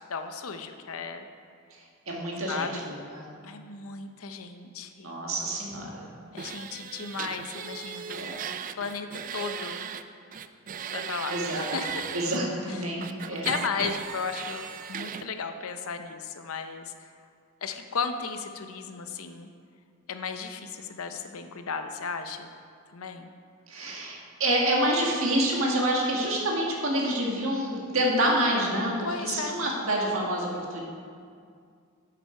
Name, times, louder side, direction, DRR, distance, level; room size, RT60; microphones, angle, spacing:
voice 1, 0.1-1.3 2.5-2.8 3.4-5.1 6.3-8.3 8.8-9.9 10.9-12.1 12.7-12.8 13.3-17.1 17.6-19.5 20.1-22.5 22.9-23.3 29.0-29.6, left 5 dB, 75° left, 7 dB, 0.7 m, -35 dB
voice 2, 2.1-3.3 5.0-6.1 8.1-8.4 11.3-11.7 12.1-13.5 23.7-30.8, right 1 dB, 65° right, -2 dB, 1.8 m, -27 dB
sound 1, 6.4-10.0 10.3-12.4 13.0-15.2, right 7 dB, 40° right, 0.3 m, -37 dB
10.0 x 7.6 x 4.4 m, 2.2 s
head